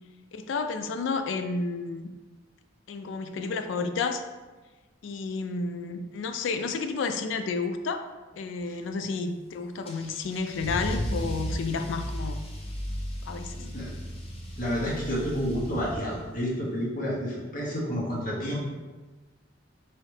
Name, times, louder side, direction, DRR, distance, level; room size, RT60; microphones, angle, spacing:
voice 1, 0.3-2.1 2.9-4.2 5.0-8.1 8.3-12.4 13.3-13.6, left 4 dB, 80° left, 8 dB, 0.3 m, -31 dB
Car / Engine starting / Accelerating revving vroom, 9.9-16.3, equal, 30° left, 0.6 m, -35 dB
voice 2, 13.6-13.9 14.6-18.7, equal, 45° left, -5 dB, 1.0 m, -30 dB
3.6 x 3.1 x 3.2 m, 1.3 s
head